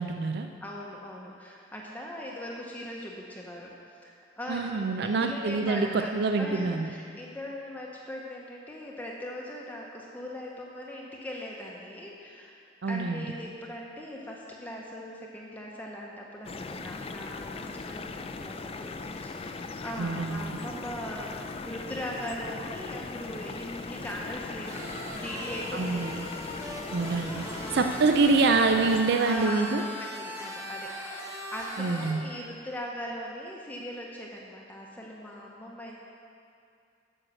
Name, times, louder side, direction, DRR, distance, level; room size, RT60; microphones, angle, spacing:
voice 1, 0.0-0.5 4.5-6.9 12.8-13.3 20.0-20.6 25.7-26.2 26.9-27.4 27.7-29.8 31.8-32.2, right 3 dB, 60° right, 5 dB, 0.4 m, -26 dB
voice 2, 0.6-3.8 4.0-6.1 6.4-12.5 12.8-24.8 25.1-26.0 29.2-29.7 30.0-30.9 31.2-36.0, equal, 10° left, -3 dB, 0.8 m, -40 dB
sound 1, 16.4-29.0, left 3 dB, 30° left, 0.4 m, -39 dB
sound 2, 24.7-32.1, equal, 15° right, 1.2 m, -40 dB
8.9 x 6.3 x 6.3 m, 2.5 s
head